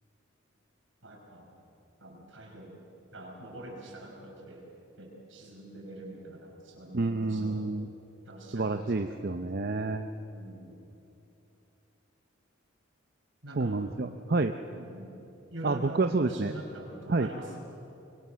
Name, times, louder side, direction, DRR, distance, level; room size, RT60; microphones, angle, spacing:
voice 1, 1.0-1.5 2.0-2.9 3.1-4.7 5.0-7.7 8.3-9.7 10.3-10.8 13.4-13.8 14.7-15.2 15.5-17.7, right 1 dB, 75° right, -1 dB, 5.4 m, -45 dB
voice 2, 6.9-7.9 8.5-10.1 13.6-14.6 15.6-16.5 17.1-17.3, right 3 dB, 50° right, 7 dB, 0.6 m, -29 dB
24.0 x 23.5 x 6.3 m, 2.9 s
head